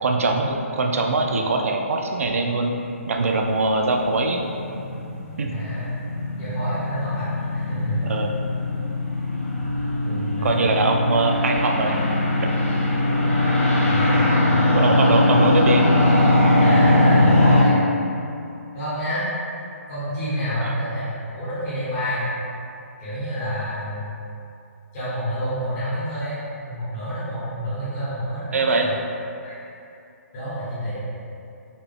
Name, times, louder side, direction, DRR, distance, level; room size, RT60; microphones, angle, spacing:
voice 1, 0.0-2.7 3.1-4.4 5.4-5.6 8.0-8.3 10.0-12.1 13.1-13.2 14.1-14.3 14.7-15.9 20.6-20.7 28.5-28.9, right 3 dB, 70° right, 2 dB, 0.4 m, -22 dB
sound 1, 3.0-17.6, left 1 dB, 60° left, 1.0 m, -21 dB
voice 2, 5.5-5.9 6.4-8.0 10.4-10.8 13.9-15.0 16.6-17.8 18.7-19.2 19.9-22.3 23.0-24.2 24.9-28.9 29.4-29.6 30.3-31.0, equal, 20° left, -14 dB, 1.0 m, -29 dB
3.9 x 2.2 x 3.4 m, 2.6 s
hypercardioid pair, 170°, 8 cm